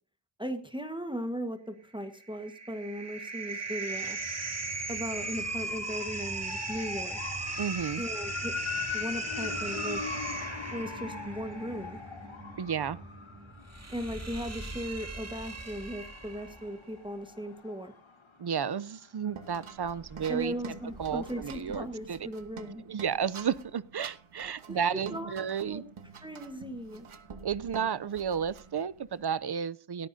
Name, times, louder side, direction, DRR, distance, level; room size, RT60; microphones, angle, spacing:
voice 1, 0.4-4.2 4.9-7.2 8.0-8.5 8.9-10.0 10.7-12.0 13.9-17.9 20.3-22.8 24.7-25.3 25.6-25.8 26.2-27.1, equal, 10° right, 6 dB, 1.4 m, -37 dB
sound 1, 2.1-16.7, right 3 dB, 30° right, 2.4 m, -38 dB
sound 2, 5.0-18.8 19.2-21.8 22.0-22.1, left 6 dB, 70° left, 2.4 m, -42 dB
voice 2, 7.6-8.0 12.6-13.0 18.4-20.5 21.0-22.2 22.9-25.8 27.4-30.1, right 7 dB, 55° right, 19 dB, 0.7 m, -32 dB
sound 3, 19.3-29.5, right 5 dB, 85° right, 1.5 m, -48 dB
18.0 x 14.0 x 2.7 m, 0.38 s
wide cardioid pair, 85°, 49 cm